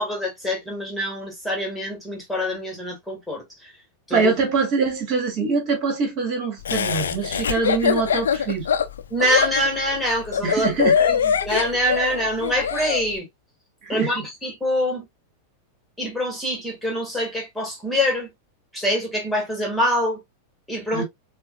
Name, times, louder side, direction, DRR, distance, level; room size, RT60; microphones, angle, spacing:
voice 1, 0.0-3.7 4.1-4.3 9.1-13.3 13.9-15.1 16.0-18.3 18.7-20.2 20.7-21.0, equal, 5° left, 1.9 m, -25 dB
voice 2, 4.1-8.7 10.4-11.0 13.8-14.2 20.9-21.0, right 4 dB, 40° right, 2.0 m, -24 dB
Laughter, 6.6-13.0, left 7 dB, 65° left, 0.5 m, -22 dB
6.7 x 2.4 x 2.2 m
figure-of-eight pair, 90°, 0 cm